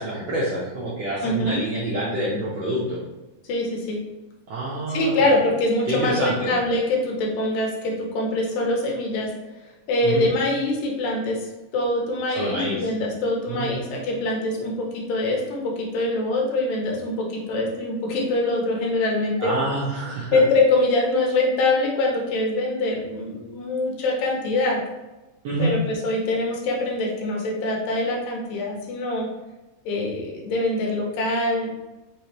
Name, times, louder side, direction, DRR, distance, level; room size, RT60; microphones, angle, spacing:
voice 1, 0.0-3.0 4.5-5.3 5.9-6.5 10.0-10.3 12.3-12.9 13.5-13.9 19.4-20.4 25.4-25.7, right 1 dB, 80° right, -7 dB, 1.5 m, -27 dB
voice 2, 1.2-1.6 3.5-4.0 4.9-9.3 9.9-11.4 11.7-19.5 20.3-24.8 25.6-29.3 29.9-31.7, left 2 dB, 80° left, -1 dB, 2.6 m, -24 dB
5.5 x 3.2 x 2.9 m, 1.0 s
omnidirectional pair, 4.0 m